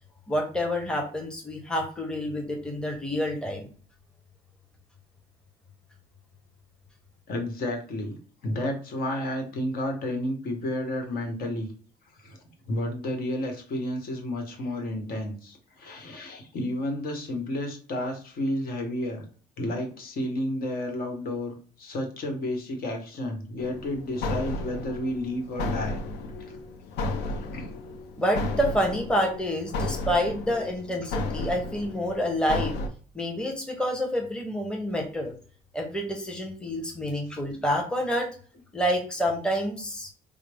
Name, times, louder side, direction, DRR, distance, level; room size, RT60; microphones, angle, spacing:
voice 1, 0.3-3.7 28.2-32.8 33.1-35.3 35.7-38.3 38.7-40.1, equal, 5° left, 1 dB, 0.8 m, -28 dB
voice 2, 7.3-8.2 8.4-11.7 12.2-12.4 12.6-19.2 19.6-26.0 26.5-26.6 27.5-27.7, left 1 dB, 60° left, 3 dB, 1.2 m, -31 dB
sound 1, 23.6-32.9, left 2 dB, 85° left, 0.6 m, -33 dB
4.8 x 2.0 x 3.4 m, 0.42 s
cardioid pair, 110°, 17 cm